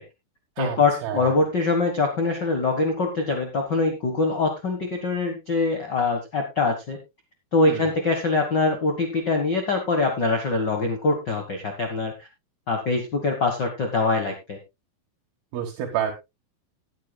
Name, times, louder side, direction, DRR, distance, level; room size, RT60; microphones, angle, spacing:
voice 1, 0.6-7.0 7.5-12.3 12.7-14.6, left 3 dB, 60° left, 3 dB, 1.1 m, -23 dB
voice 2, 15.5-16.1, right 9 dB, 80° right, 1 dB, 3.3 m, -28 dB
19.5 x 8.4 x 2.3 m, 0.23 s
omnidirectional pair, 4.3 m